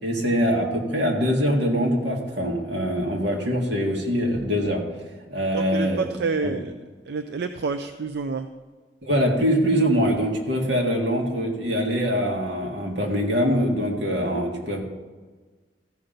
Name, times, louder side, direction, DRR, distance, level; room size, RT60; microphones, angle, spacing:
voice 1, 0.0-4.8 5.3-6.1 6.4-6.5 9.0-14.8, equal, 85° right, 0 dB, 1.9 m, -23 dB
voice 2, 5.5-6.7 7.1-8.5, right 4 dB, 70° right, 8 dB, 0.5 m, -28 dB
14.5 x 5.7 x 5.1 m, 1.4 s
head